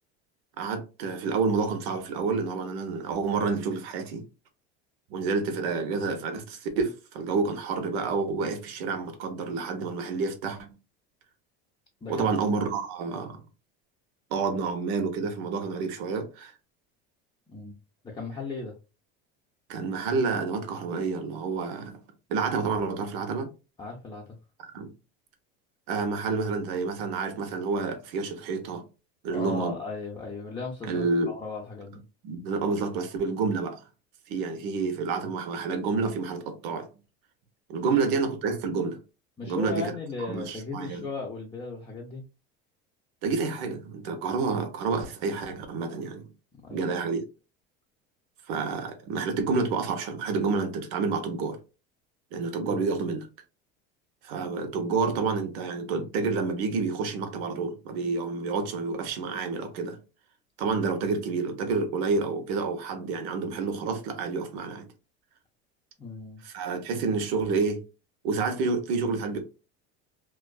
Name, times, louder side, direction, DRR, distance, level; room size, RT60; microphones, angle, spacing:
voice 1, 0.6-4.2 5.1-10.7 12.1-13.4 14.3-16.5 19.7-22.0 22.3-23.5 24.7-24.9 25.9-28.8 29.2-29.8 30.9-31.3 32.2-33.8 34.3-36.9 37.7-39.0 39.4-39.9 40.3-41.1 43.2-46.3 46.7-47.2 48.5-51.6 52.3-53.3 54.2-60.0 60.6-64.9 66.4-67.8 68.2-69.4, right 4 dB, 75° right, 0.7 m, -29 dB
voice 2, 12.0-12.3 17.5-17.7 18.0-18.8 23.8-24.4 29.3-32.0 37.8-38.0 39.4-42.2 46.5-46.9 52.6-52.8 66.0-66.4, left 4 dB, 15° left, 0.5 m, -37 dB
2.5 x 2.2 x 2.2 m
supercardioid pair, 105°, 30 cm